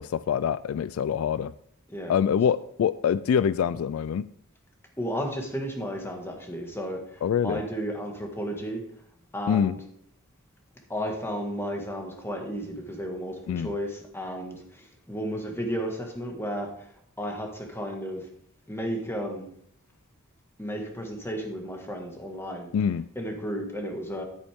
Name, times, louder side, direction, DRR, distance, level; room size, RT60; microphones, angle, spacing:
voice 1, 0.0-1.5 2.1-4.3 7.2-7.6 9.5-9.8 13.5-13.7 22.7-23.1, left 8 dB, 75° left, 0.3 m, -25 dB
voice 2, 5.0-8.8 9.3-9.8 10.9-16.9 17.2-18.2 18.7-19.5 20.6-22.7 23.1-24.2, equal, 10° left, 1.7 m, -33 dB
10.5 x 8.4 x 3.6 m
head